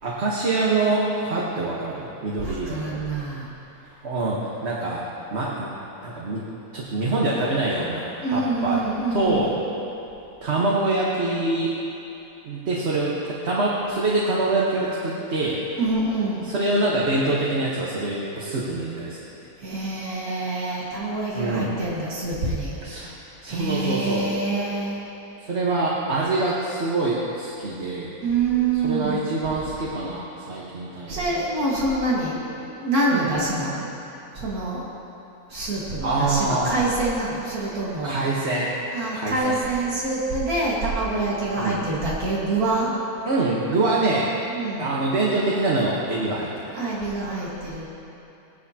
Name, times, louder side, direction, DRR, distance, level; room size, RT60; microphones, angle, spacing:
voice 1, 0.0-3.0 4.0-5.0 5.3-5.7 6.0-6.4 6.7-8.8 9.1-9.6 10.4-11.8 12.4-15.8 16.5-19.3 21.3-21.8 22.8-23.1 23.4-24.3 25.5-28.1 28.8-31.2 33.1-33.3 36.0-36.8 38.0-38.7 39.1-39.6 41.6-41.8 43.3-44.3 44.8-46.7, right 2 dB, 50° right, -5 dB, 1.5 m, -25 dB
voice 2, 2.4-3.5 8.2-9.6 15.8-16.5 19.6-22.8 23.4-25.0 28.2-29.3 31.1-34.0 34.3-34.8 35.5-38.2 38.9-42.9 44.5-44.9 46.7-47.9, right 2 dB, 80° right, -6 dB, 2.3 m, -26 dB
17.0 x 11.5 x 2.9 m, 3.0 s
omnidirectional pair, 1.5 m